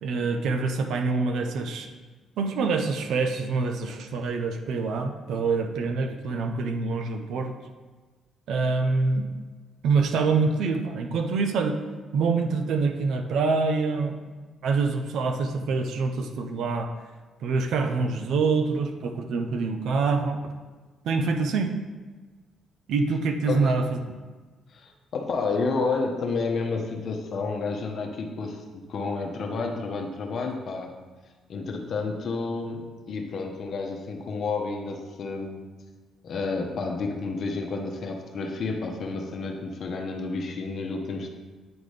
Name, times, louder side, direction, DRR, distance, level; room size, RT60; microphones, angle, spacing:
voice 1, 0.0-1.9 2.4-7.5 8.5-9.3 9.8-11.8 12.1-14.2 14.6-16.9 17.4-20.5 21.0-21.7 22.9-24.2, right 4 dB, 75° right, 5 dB, 0.6 m, -25 dB
voice 2, 24.7-30.9 31.5-35.6 36.2-41.3, left 4 dB, 60° left, 2 dB, 0.9 m, -30 dB
8.7 x 4.0 x 3.3 m, 1.3 s
cardioid pair, 90°, 0 cm